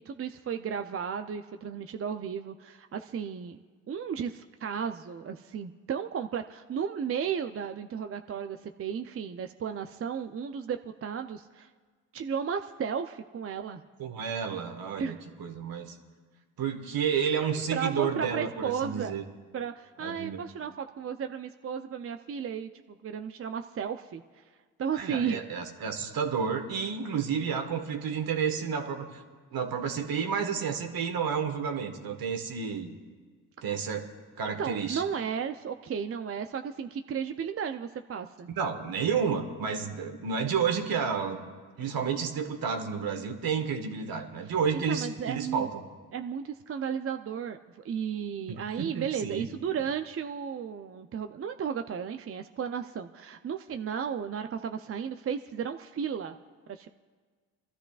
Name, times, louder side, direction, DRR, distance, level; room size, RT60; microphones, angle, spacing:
voice 1, 0.1-3.6 3.9-11.7 12.1-13.8 15.0-15.2 17.7-19.1 19.5-22.7 23.0-24.4 24.8-25.4 34.4-38.5 44.7-45.7 46.1-56.3 56.7-56.9, right 7 dB, 35° right, 7 dB, 0.6 m, -34 dB
voice 2, 14.0-15.1 15.4-16.0 16.6-19.2 20.0-20.4 24.9-29.2 29.5-32.9 33.6-34.1 34.4-35.0 38.5-41.5 41.8-45.8 48.5-49.5, right 6 dB, 55° right, 5 dB, 1.8 m, -31 dB
25.5 x 13.0 x 2.5 m, 1.5 s
hypercardioid pair, 55°, 42 cm